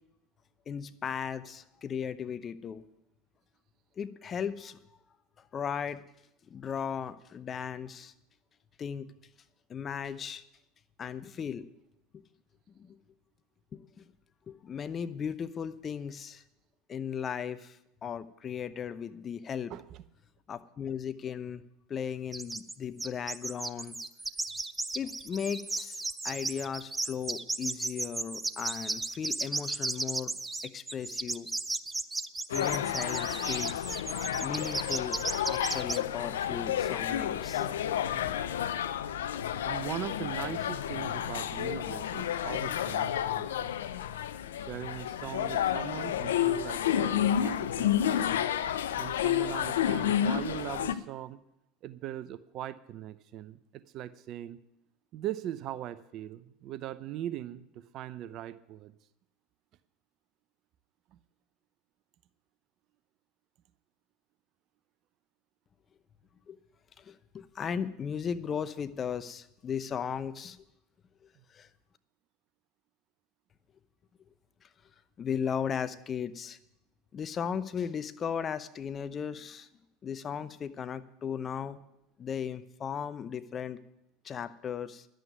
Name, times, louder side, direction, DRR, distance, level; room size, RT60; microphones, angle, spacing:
voice 1, 0.7-2.8 4.0-4.8 5.4-6.0 6.5-8.1 8.8-9.1 9.7-10.4 11.0-11.7 12.1-12.2 12.7-13.0 13.7-14.1 14.5-16.4 16.9-19.7 20.5-21.6 21.9-24.0 24.9-26.0 26.2-30.3 30.6-31.5 32.5-34.0 34.4-35.2 35.5-38.0 66.5-66.6 67.0-70.6 71.5-71.7 74.6-74.7 75.2-76.6 77.1-79.7 80.0-81.8 82.2-83.8 84.2-85.1, left 7 dB, 35° left, 13 dB, 0.8 m, -36 dB
voice 2, 19.7-20.0 39.6-43.8 44.6-48.2 49.0-51.4 51.8-54.6 55.1-59.0 61.1-61.2, right 12 dB, 50° right, 14 dB, 0.7 m, -40 dB
sound 1, 22.3-22.7 23.0-36.0, right 2 dB, 15° right, 0.6 m, -35 dB
sound 2, 32.5-50.9, left 10 dB, 80° left, 0.6 m, -31 dB
11.5 x 8.0 x 9.2 m, 0.85 s
hypercardioid pair, 80°, 0 cm